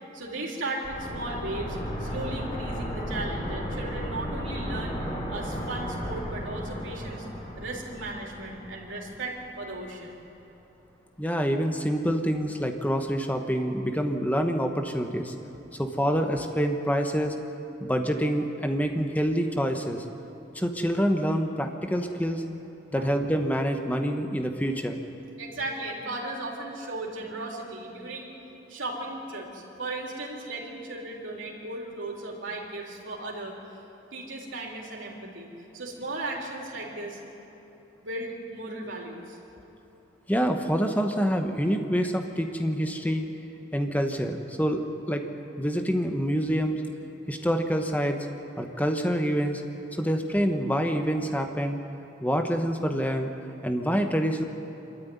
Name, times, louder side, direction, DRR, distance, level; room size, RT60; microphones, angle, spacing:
voice 1, 0.1-5.0 5.3-7.3 7.6-10.2 23.0-23.1 25.4-28.3 28.7-33.6 34.1-35.5 35.7-37.2 38.0-39.4, right 2 dB, 80° right, -2 dB, 3.8 m, -36 dB
sound 1, 0.8-9.6 9.8-9.9, equal, 30° left, 3.7 m, -34 dB
voice 2, 11.2-15.3 15.8-17.3 17.8-20.0 20.5-22.4 22.9-25.0 40.3-43.3 43.7-45.2 45.6-46.8 47.3-48.2 48.6-49.6 50.0-51.8 52.2-53.3 53.6-54.4, equal, 10° left, 5 dB, 1.1 m, -26 dB
25.0 x 13.5 x 9.5 m, 3.0 s
head